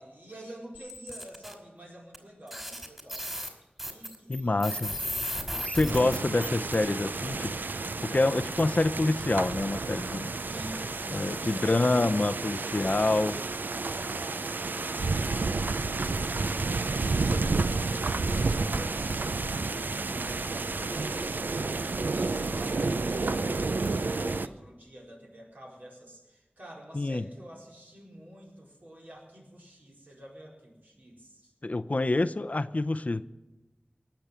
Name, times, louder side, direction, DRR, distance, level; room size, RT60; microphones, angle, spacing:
voice 1, 0.0-3.3 3.9-5.3 10.5-12.1 14.0-21.3 21.8-31.5, equal, 65° right, -3 dB, 4.5 m, -48 dB
sound 1, 0.7-1.5 2.1-2.2 2.5-6.7, equal, 10° right, 2.7 m, -35 dB
voice 2, 4.3-4.9 5.6-7.5 8.0-10.3 11.1-13.4 26.9-27.2 31.6-33.2, left 2 dB, 50° left, 12 dB, 0.5 m, -27 dB
sound 2, 5.9-24.5, right 3 dB, 85° right, 0.5 m, -31 dB
19.0 x 7.0 x 8.9 m, 1.1 s
wide cardioid pair, 50°, 3 cm